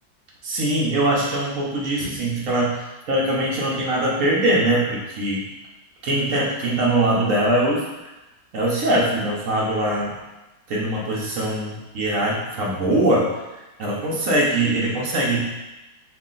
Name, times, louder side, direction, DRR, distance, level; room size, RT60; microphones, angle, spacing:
voice 1, 0.4-5.5 6.0-7.8 8.5-10.1 10.7-13.3 13.8-15.4, right 1 dB, 60° right, -3 dB, 0.8 m, -22 dB
4.6 x 2.4 x 3.7 m, 1.1 s
omnidirectional pair, 2.0 m